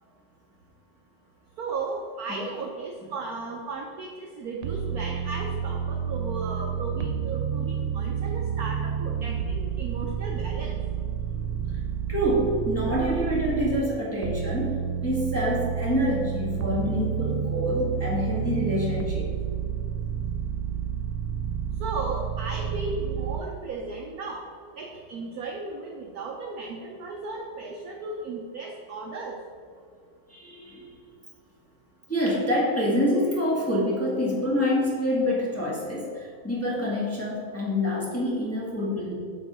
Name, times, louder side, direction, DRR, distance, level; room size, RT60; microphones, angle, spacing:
voice 1, 1.6-10.8 21.8-24.4 24.8-29.4, right 3 dB, 75° right, 1 dB, 0.8 m, -35 dB
sound 1, 4.6-13.8 14.2-23.4, right 8 dB, 90° right, 1.5 m, -30 dB
voice 2, 12.1-19.3 30.3-30.9 32.1-39.1, equal, 10° left, -7 dB, 1.3 m, -26 dB
7.6 x 3.9 x 5.5 m, 2.2 s
omnidirectional pair, 2.3 m